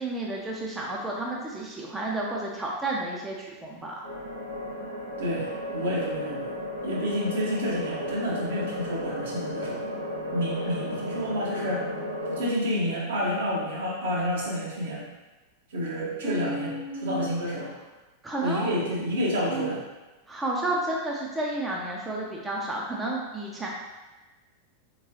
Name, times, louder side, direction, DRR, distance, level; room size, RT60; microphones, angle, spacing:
voice 1, 0.0-3.9 16.2-17.3 18.2-18.7 19.5-19.7 20.3-23.7, right 2 dB, 10° right, -3 dB, 0.5 m, -31 dB
sound 1, 4.0-12.5, left 1 dB, 80° right, 0.7 m, -34 dB
voice 2, 5.2-6.6 6.8-9.9 10.3-11.9 12.3-15.0 15.7-17.8 18.4-19.8, equal, 60° right, -4 dB, 1.0 m, -29 dB
3.6 x 3.0 x 2.8 m, 1.1 s
figure-of-eight pair, 90°, 0 cm